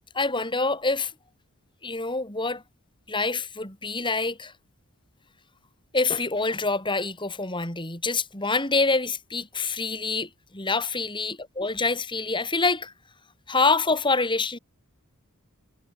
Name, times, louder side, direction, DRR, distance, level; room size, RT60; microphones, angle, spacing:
voice 1, 0.1-1.1 1.8-2.6 3.1-4.5 5.9-12.9 13.5-14.6, left 3 dB, 20° left, 5.1 m, -26 dB
head